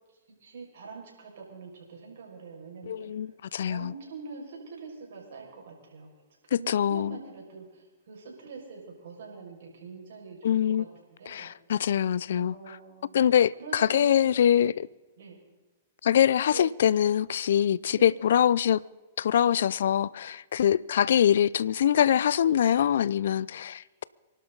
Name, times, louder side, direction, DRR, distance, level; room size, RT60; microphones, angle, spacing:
voice 1, 0.4-3.1 3.6-6.1 6.5-10.9 11.2-11.5 12.3-13.2 13.6-14.7 15.2-15.4 16.5-16.7 17.9-18.2 21.0-21.1, right 4 dB, 70° right, 5.6 m, -44 dB
voice 2, 2.8-3.9 6.5-7.2 10.4-10.8 11.3-12.8 13.1-14.9 16.0-18.8 19.2-24.0, left 9 dB, 70° left, 0.4 m, -24 dB
26.5 x 12.0 x 3.9 m
hypercardioid pair, 120°, 0 cm